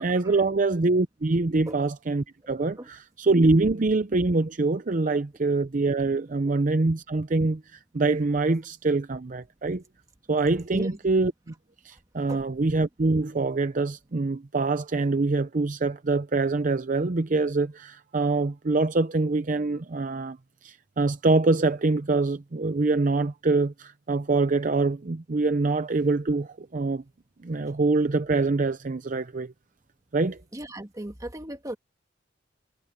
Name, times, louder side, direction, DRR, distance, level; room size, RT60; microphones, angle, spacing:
voice 1, 0.0-9.8 10.3-11.3 11.8-20.4 20.6-27.0 27.4-29.5 30.1-30.4, right 3 dB, 45° right, 0.6 m, -25 dB
voice 2, 30.5-31.8, right 1 dB, 20° right, 1.9 m, -36 dB
head